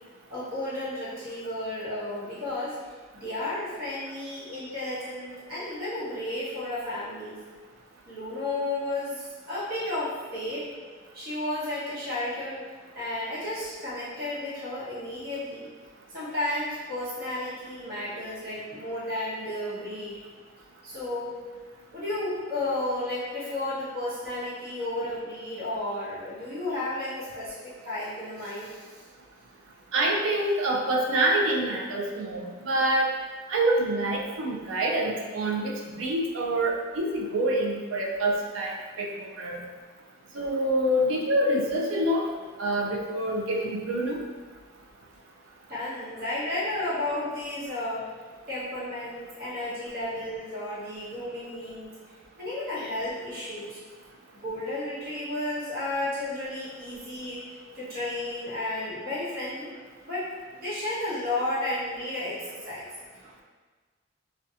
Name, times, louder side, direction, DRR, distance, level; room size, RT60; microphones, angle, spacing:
voice 1, 0.3-2.7 3.1-7.4 8.1-10.6 11.1-12.6 12.9-15.7 16.1-20.2 20.8-21.3 21.9-29.0 45.7-48.1 48.5-51.9 52.4-53.8 54.3-57.4 57.7-59.7 60.0-62.4 62.6-62.9, left 1 dB, 50° right, -9 dB, 1.0 m, -32 dB
voice 2, 29.9-33.1 33.5-39.6 40.3-42.3 42.6-44.2, right 1 dB, 85° right, -1 dB, 0.4 m, -26 dB
2.6 x 2.2 x 2.4 m, 1.4 s
head